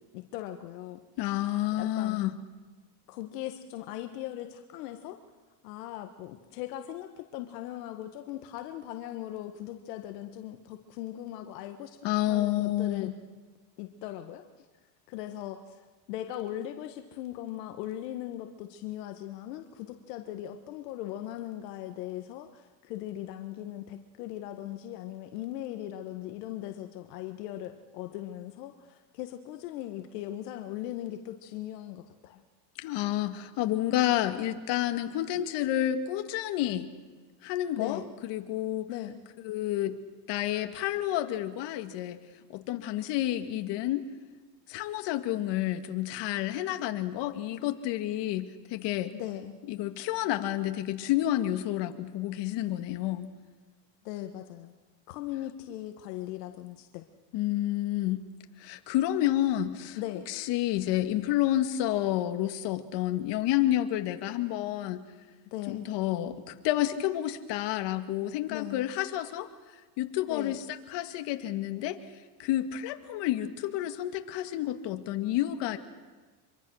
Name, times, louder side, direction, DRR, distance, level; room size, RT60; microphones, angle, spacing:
voice 1, 0.1-1.0 1.8-2.3 3.1-5.2 5.6-12.0 12.3-13.1 13.8-14.6 15.1-32.4 37.8-38.1 38.9-39.2 49.1-49.6 54.0-54.7 55.1-57.0 59.9-60.3 65.4-65.8 68.5-68.8 70.3-70.6, left 13 dB, 75° left, 6 dB, 1.6 m, -39 dB
voice 2, 1.2-2.3 12.0-13.1 32.8-36.9 37.4-38.9 39.4-40.0 40.3-42.2 42.5-44.0 44.7-49.1 49.7-53.3 57.3-58.2 58.6-60.0 60.3-65.0 65.7-69.5 70.0-72.0 72.4-75.8, left 13 dB, 55° left, 8 dB, 2.0 m, -30 dB
25.0 x 23.5 x 6.4 m, 1.3 s
supercardioid pair, 105°, 49 cm